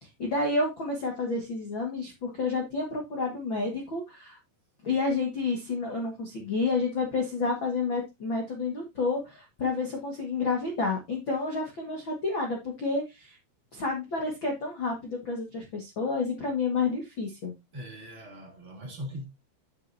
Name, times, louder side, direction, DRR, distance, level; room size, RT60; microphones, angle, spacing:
voice 1, 0.2-4.4 4.8-13.4 13.7-17.5, left 3 dB, 85° left, 1.0 m, -30 dB
voice 2, 17.7-19.2, equal, 25° right, 1.9 m, -40 dB
9.7 x 7.4 x 2.7 m
omnidirectional pair, 5.3 m